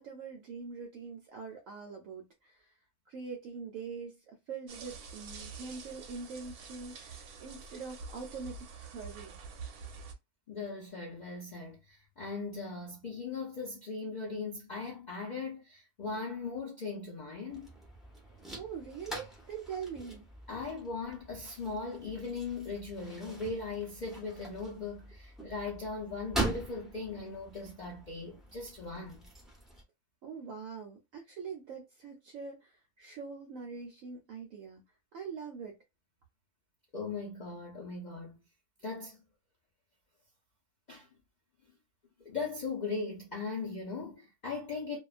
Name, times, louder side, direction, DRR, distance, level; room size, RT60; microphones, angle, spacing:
voice 1, 0.0-2.7 3.1-9.4 18.6-20.2 30.2-34.8 35.1-35.8, right 5 dB, 70° right, 0.9 m, -43 dB
sound 1, 4.7-10.1, right 5 dB, 90° right, 1.1 m, -47 dB
voice 2, 10.5-17.7 20.5-29.3 36.9-38.4 38.8-39.2 40.9-41.1 42.2-45.0, left 4 dB, 80° left, 0.4 m, -39 dB
sound 2, 17.5-29.8, right 2 dB, ahead, 0.4 m, -43 dB
2.4 x 2.2 x 2.4 m
omnidirectional pair, 1.6 m